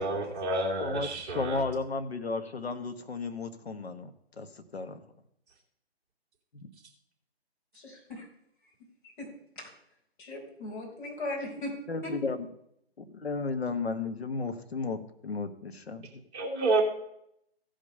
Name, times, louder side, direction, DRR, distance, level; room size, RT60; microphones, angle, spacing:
voice 1, 0.0-1.6 16.3-16.8, right 3 dB, 25° right, -3 dB, 2.7 m, -29 dB
voice 2, 0.8-5.0 6.6-6.7 11.9-12.5 13.0-16.2, left 4 dB, 70° left, 9 dB, 1.4 m, -34 dB
voice 3, 7.7-8.3 9.0-9.7 10.2-11.8, left 1 dB, 50° left, -3 dB, 4.6 m, -39 dB
15.5 x 5.3 x 5.5 m, 0.74 s
figure-of-eight pair, 150°, 32 cm